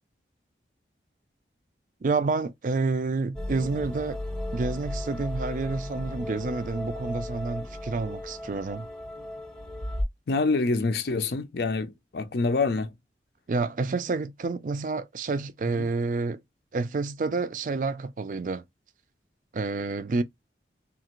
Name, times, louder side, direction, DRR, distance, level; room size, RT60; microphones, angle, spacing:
voice 1, 2.0-4.2 4.5-8.9 13.5-16.4 16.7-18.6 19.5-20.2, right 3 dB, 45° right, 0.4 m, -29 dB
sound 1, 3.4-10.0, left 1 dB, 5° left, 0.6 m, -35 dB
voice 2, 10.3-12.9 15.8-15.9, left 3 dB, 65° left, 0.5 m, -26 dB
2.8 x 2.4 x 2.9 m
head